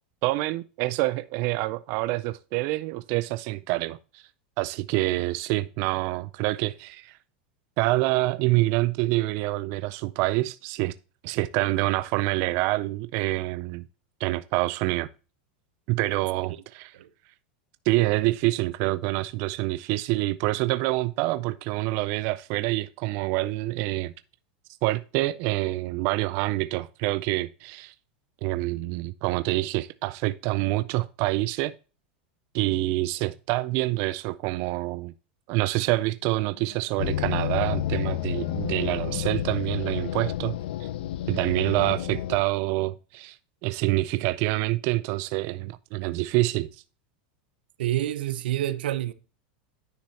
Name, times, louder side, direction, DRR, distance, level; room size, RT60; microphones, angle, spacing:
voice 1, 0.2-4.3 4.6-7.2 7.8-10.9 11.2-13.9 14.2-15.1 15.9-16.9 17.9-24.1 24.8-27.9 28.4-31.7 32.5-35.1 35.5-40.5 40.8-40.9 41.3-43.4 43.6-46.8, right 19 dB, 50° right, 0.4 m, -26 dB
sound 1, 36.2-41.3, left 11 dB, 40° left, 1.4 m, -46 dB
sound 2, 37.0-42.4, left 11 dB, 80° left, 0.5 m, -30 dB
voice 2, 47.8-49.1, right 13 dB, 85° right, 0.7 m, -27 dB
10.0 x 6.4 x 2.8 m
supercardioid pair, 145°, 5 cm